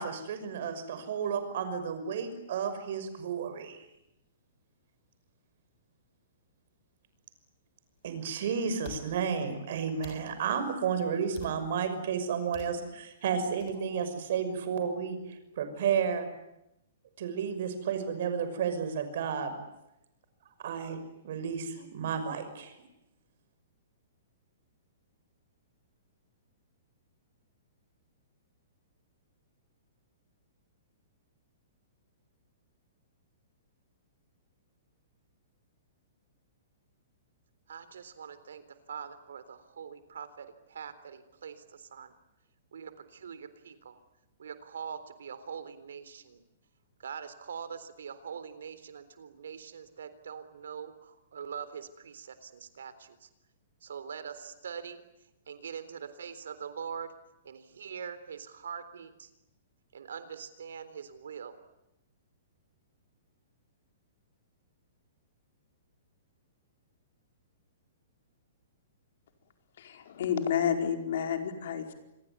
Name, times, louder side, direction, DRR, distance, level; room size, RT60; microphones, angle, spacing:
voice 1, 0.0-3.9 8.0-16.3 17.2-19.5 20.6-22.8, right 7 dB, 50° right, 9 dB, 6.0 m, -32 dB
sound 1, 8.0-8.1 8.8-9.0 10.0-10.2 11.3-11.6 12.5-12.7 13.6-13.8, left 7 dB, 35° left, 6.8 m, -44 dB
voice 2, 37.7-42.1 42.7-44.0 44.4-46.4 47.0-53.3 53.8-55.0 55.5-57.1 57.4-59.3 59.9-61.6, right 7 dB, 90° right, 13 dB, 3.8 m, -43 dB
voice 3, 69.8-71.9, left 8 dB, 55° left, 5 dB, 4.7 m, -30 dB
27.5 x 22.0 x 9.8 m, 0.87 s
hypercardioid pair, 170°, 0 cm